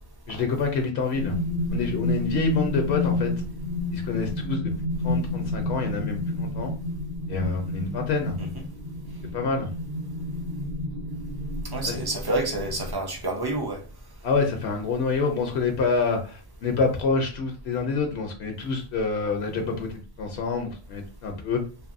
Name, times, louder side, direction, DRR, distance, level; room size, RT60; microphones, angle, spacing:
voice 1, 0.3-1.3 1.7-3.3 3.9-4.8 5.0-6.7 7.3-8.4 9.2-9.7 11.9-12.0 14.2-21.6, left 4 dB, 75° left, 0.9 m, -27 dB
sound 1, 1.1-12.9, left 2 dB, 55° right, 0.9 m, -30 dB
voice 2, 11.7-13.8, right 2 dB, 35° right, 0.4 m, -29 dB
2.8 x 2.6 x 2.5 m
omnidirectional pair, 1.1 m